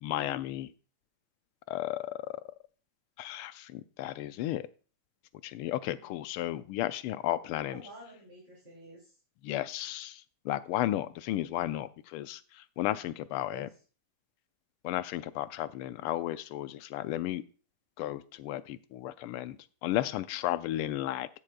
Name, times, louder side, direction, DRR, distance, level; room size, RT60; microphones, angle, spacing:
voice 1, 0.0-0.7 1.7-2.4 3.2-4.7 5.4-7.8 9.4-13.7 14.8-17.4 18.0-21.3, left 13 dB, 85° left, 14 dB, 1.5 m, -34 dB
voice 2, 5.9-6.2 7.7-9.2 9.5-9.6 12.8-13.1 13.5-13.7, right 1 dB, 20° right, -4 dB, 2.9 m, -51 dB
16.0 x 6.6 x 2.2 m, 0.37 s
omnidirectional pair, 2.4 m